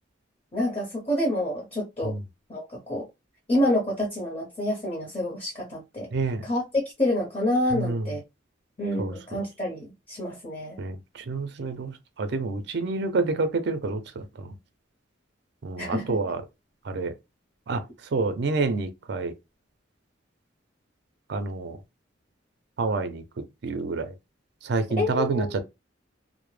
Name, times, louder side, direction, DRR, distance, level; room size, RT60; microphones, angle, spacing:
voice 1, 0.5-2.1 2.5-3.0 3.5-6.1 6.4-6.6 7.0-8.2 8.8-10.8 15.8-16.1 25.0-25.6, left 1 dB, 30° left, 0.8 m, -28 dB
voice 2, 6.1-6.4 7.7-8.0 9.0-9.1 10.8-11.0 11.3-11.9 12.2-14.5 15.6-16.4 16.9-17.1 17.7-17.8 18.1-19.3 21.3-21.8 22.8-23.2 23.6-24.1 24.6-25.6, right 3 dB, 60° right, 0.4 m, -28 dB
2.1 x 2.0 x 3.1 m
head